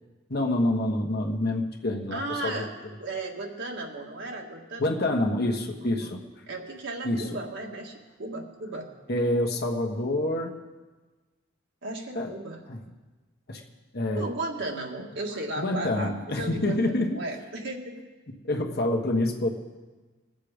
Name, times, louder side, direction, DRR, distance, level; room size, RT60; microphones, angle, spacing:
voice 1, 0.3-2.7 4.8-6.2 7.0-7.2 9.1-10.5 12.1-12.3 12.7-12.8 13.5-13.6 13.9-14.2 15.6-17.2 18.4-19.5, left 1 dB, 50° left, 2 dB, 1.3 m, -27 dB
voice 2, 2.1-2.7 3.0-4.9 5.8-6.1 6.5-8.9 11.8-12.6 14.1-17.9, right 2 dB, 60° right, 0 dB, 1.8 m, -35 dB
20.5 x 7.6 x 5.0 m, 1.3 s
head